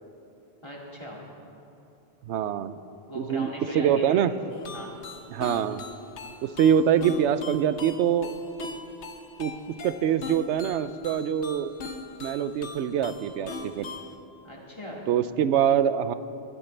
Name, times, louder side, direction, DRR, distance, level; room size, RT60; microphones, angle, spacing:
voice 1, 0.6-1.2 3.1-4.2 4.7-4.9 14.4-15.1, equal, 25° left, -3 dB, 2.4 m, -38 dB
voice 2, 2.2-2.8 3.1-4.3 5.3-5.8 6.4-8.3 9.4-9.5 9.8-11.7 12.2-13.9 15.1-16.1, right 9 dB, 90° right, 13 dB, 0.9 m, -24 dB
sound 1, 4.5-14.2, left 3 dB, 85° left, 1.2 m, -41 dB
22.5 x 12.5 x 3.3 m, 2.7 s
omnidirectional pair, 1.1 m